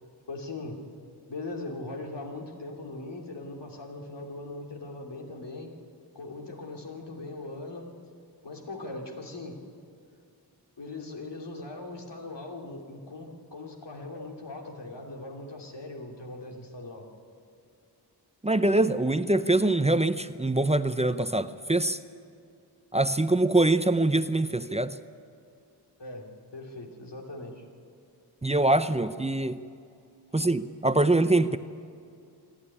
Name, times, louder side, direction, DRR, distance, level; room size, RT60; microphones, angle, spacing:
voice 1, 0.3-0.8 1.3-5.7 6.1-7.9 8.4-9.6 10.8-17.1 26.0-27.6 30.3-30.5, left 2 dB, 85° left, 1 dB, 3.0 m, -40 dB
voice 2, 18.4-22.0 22.9-25.0 28.4-29.6 30.3-31.6, right 2 dB, 15° right, 11 dB, 0.7 m, -24 dB
26.5 x 12.0 x 9.9 m, 2.4 s
wide cardioid pair, 70°, 41 cm